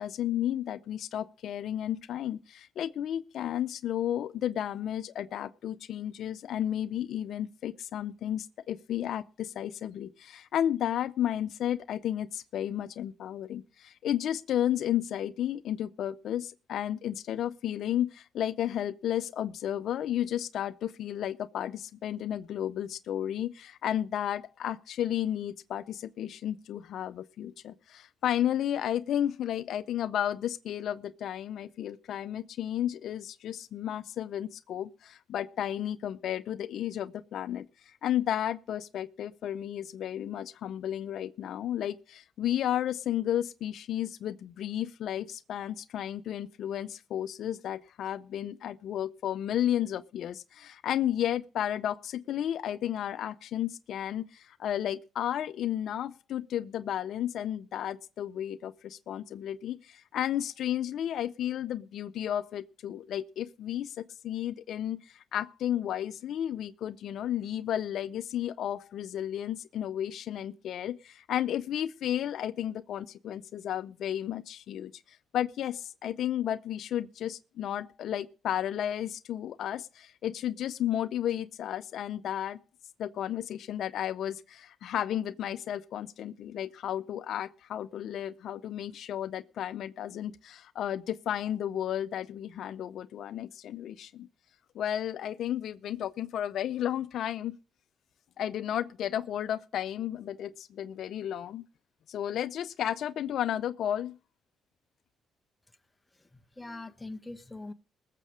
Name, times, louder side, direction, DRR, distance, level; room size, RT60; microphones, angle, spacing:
voice 1, 0.0-37.7 38.0-82.6 83.0-94.3 94.7-97.6 98.4-101.6 102.1-104.2, left 11 dB, 70° left, 0.6 m, -33 dB
voice 2, 106.1-107.7, left 2 dB, 15° left, 1.1 m, -43 dB
20.0 x 7.5 x 5.0 m
cardioid pair, 90°, 0 cm